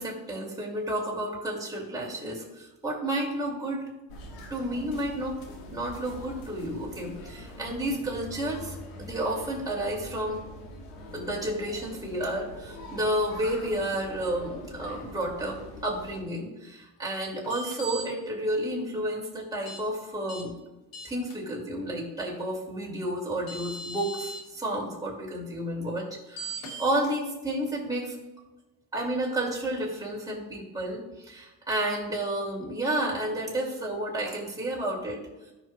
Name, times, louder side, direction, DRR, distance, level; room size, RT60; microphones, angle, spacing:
voice 1, 0.0-3.8 4.5-5.4 5.7-10.4 11.1-20.5 21.0-28.1 28.9-35.2, right 1 dB, 10° right, -4 dB, 2.9 m, -31 dB
sound 1, 4.1-16.2, left 1 dB, 85° left, 1.8 m, -44 dB
sound 2, 17.4-18.0 19.7-19.8 20.3-20.4 20.9-21.3 23.0-23.1 23.5-24.4 26.4-26.9, right 2 dB, 70° left, 2.6 m, -38 dB
13.0 x 5.7 x 2.5 m, 1.0 s
supercardioid pair, 70°, 35 cm